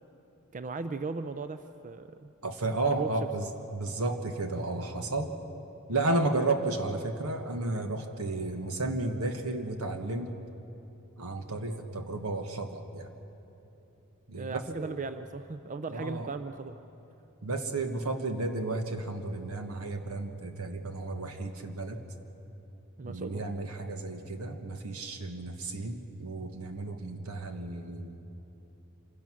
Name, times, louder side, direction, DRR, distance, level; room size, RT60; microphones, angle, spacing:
voice 1, 0.5-2.3 2.9-3.1 14.4-16.8 23.0-23.4, right 4 dB, 35° right, 10 dB, 0.5 m, -37 dB
voice 2, 2.4-5.4 5.9-10.3 11.2-13.1 14.3-15.0 15.9-16.3 17.4-22.0 23.0-28.2, right 2 dB, 80° right, 6 dB, 1.5 m, -33 dB
26.0 x 16.5 x 6.3 m, 3.0 s
head